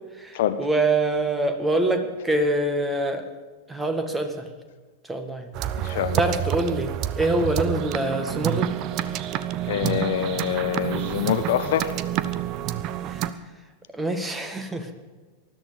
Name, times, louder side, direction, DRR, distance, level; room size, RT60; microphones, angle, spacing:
voice 1, 0.2-3.2 3.7-4.5 5.0-5.5 5.8-8.7 13.1-13.2 13.9-14.9, right 2 dB, 10° right, 1.9 m, -25 dB
sound 1, 5.5-13.3, right 12 dB, 40° right, 0.8 m, -28 dB
voice 2, 5.8-6.2 9.7-11.9, left 10 dB, 55° left, 0.8 m, -25 dB
20.0 x 13.0 x 5.3 m
figure-of-eight pair, 90°, 0 cm